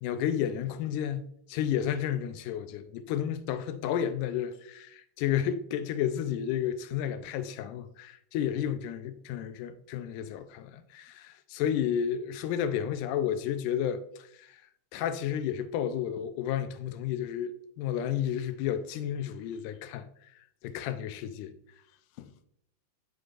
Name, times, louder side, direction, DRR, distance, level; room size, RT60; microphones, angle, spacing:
voice 1, 0.0-14.0 14.4-14.6 14.9-20.1 20.6-21.5 22.2-22.3, left 9 dB, 85° left, 2.0 m, -32 dB
9.4 x 4.7 x 2.5 m
omnidirectional pair, 3.5 m